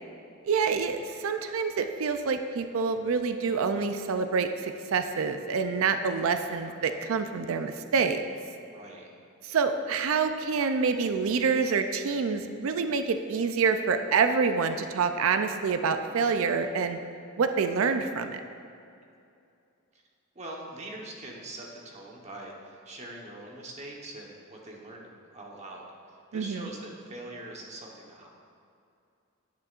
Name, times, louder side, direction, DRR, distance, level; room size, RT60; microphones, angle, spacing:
voice 1, 0.4-8.2 9.4-17.0 17.4-18.4 26.3-26.7, right 5 dB, 75° right, 8 dB, 0.4 m, -27 dB
voice 2, 8.6-9.1 19.9-20.0 20.3-28.3, right 1 dB, 35° right, -1 dB, 1.1 m, -43 dB
10.5 x 9.5 x 2.5 m, 2.5 s
head